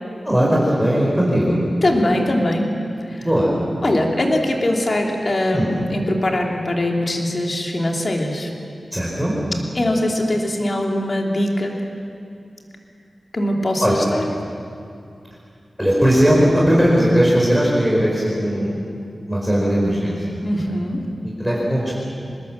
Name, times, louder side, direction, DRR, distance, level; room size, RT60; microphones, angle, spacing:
voice 1, 0.2-1.6 3.2-3.5 5.5-5.7 8.9-9.3 13.8-14.0 15.8-19.0 19.3-20.4 20.7-20.8 21.2-22.0, equal, ahead, -5 dB, 5.0 m, -18 dB
voice 2, 1.8-3.3 3.8-8.5 9.7-11.8 13.3-14.3 20.4-21.1, left 1 dB, 40° left, 0 dB, 3.2 m, -21 dB
26.0 x 20.5 x 7.5 m, 2.5 s
wide cardioid pair, 120°, 0 cm